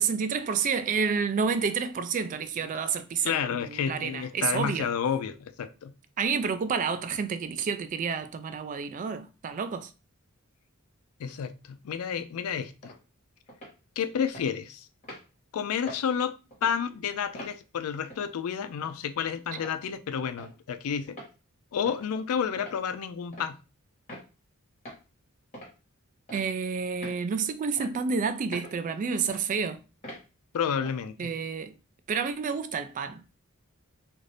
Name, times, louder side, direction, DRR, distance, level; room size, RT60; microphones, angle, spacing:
voice 1, 0.0-4.9 6.2-9.9 26.3-29.8 31.2-31.7 32.1-33.2, right 6 dB, 35° right, 0.3 m, -29 dB
voice 2, 3.2-5.9 11.2-12.9 14.0-14.9 15.5-16.3 16.6-21.2 21.7-23.6 30.5-31.3, left 7 dB, 85° left, 0.4 m, -30 dB
sound 1, 12.8-13.0 13.5-13.8 14.3-14.5 15.0-15.2 15.9-16.0 16.5-16.8 17.3-17.6 18.1-18.3 18.8-18.9 19.6-19.8 20.4-20.5 21.1-21.3 21.9-22.1 22.6-22.8 23.3-23.5 24.1-24.3 24.9-25.0 25.5-25.7 26.3-26.5 27.0-27.2 27.8-27.9 28.5-28.8 29.3-29.4 30.0-30.2 30.8-31.0, equal, 35° left, 1.4 m, -43 dB
2.6 x 2.5 x 3.2 m
head